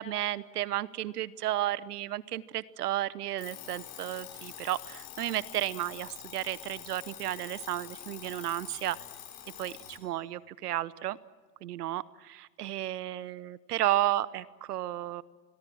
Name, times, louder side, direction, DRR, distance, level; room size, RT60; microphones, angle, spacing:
voice 1, 0.0-9.0 9.6-11.2 11.6-15.2, right 13 dB, 70° right, 19 dB, 1.0 m, -33 dB
Alarm, 3.4-10.1, left 11 dB, 55° left, 4.4 m, -46 dB
29.5 x 21.5 x 6.2 m, 1.4 s
hypercardioid pair, 95°, 49 cm